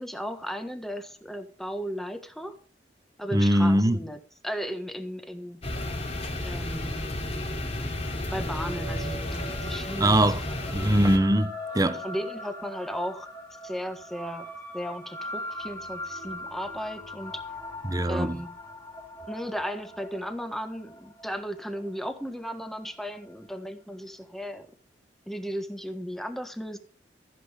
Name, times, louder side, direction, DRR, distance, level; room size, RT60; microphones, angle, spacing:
voice 1, 0.0-2.5 3.2-4.2 4.4-5.6 6.4-7.0 8.3-10.6 11.8-13.3 13.6-14.5 14.7-17.4 18.0-18.5 19.3-24.7 25.3-26.8, equal, ahead, 1.4 m, -35 dB
voice 2, 3.3-4.0 10.0-10.4 10.7-12.0 17.8-18.4, right 1 dB, 20° right, 0.9 m, -22 dB
sound 1, 5.6-11.2, left 1 dB, 35° left, 2.8 m, -32 dB
sound 2, 8.3-23.0, equal, 20° left, 3.7 m, -41 dB
15.0 x 7.9 x 5.0 m
head